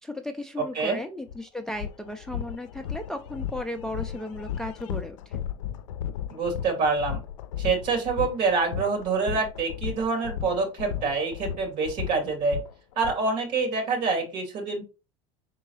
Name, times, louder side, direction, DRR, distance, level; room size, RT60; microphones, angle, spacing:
voice 1, 0.0-5.4, left 1 dB, 5° left, 6 dB, 0.4 m, -35 dB
sound 1, 1.3-1.4 1.7-13.1, left 9 dB, 80° left, 0.4 m, -35 dB
voice 2, 6.3-7.2 7.6-12.6 13.0-14.8, right 4 dB, 55° right, 1 dB, 2.3 m, -26 dB
4.5 x 3.8 x 3.1 m, 0.30 s
hypercardioid pair, 95°, 16 cm